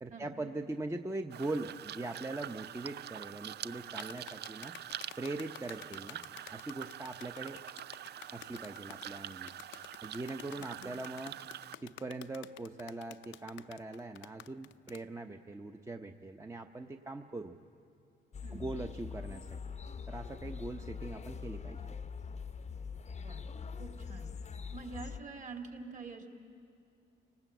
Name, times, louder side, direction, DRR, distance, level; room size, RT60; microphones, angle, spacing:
voice 1, 0.0-4.7 5.2-6.2 6.5-7.6 8.3-9.5 10.0-11.4 11.8-17.6 18.5-19.7 20.1-21.9, right 2 dB, 15° right, 5 dB, 0.8 m, -41 dB
sound 1, 1.3-11.8, right 11 dB, 55° right, 0.5 m, -45 dB
sound 2, 4.0-15.0, left 12 dB, 70° left, 0.6 m, -51 dB
voice 2, 10.5-11.0 18.4-18.7 20.8-20.9 23.2-23.5 23.7-24.3 24.7-26.3, right 4 dB, 40° right, 3 dB, 3.0 m, -47 dB
sound 3, 18.3-25.2, left 6 dB, 35° left, 0.7 m, -43 dB
29.0 x 19.0 x 8.0 m, 2.5 s
cardioid pair, 90°, 20 cm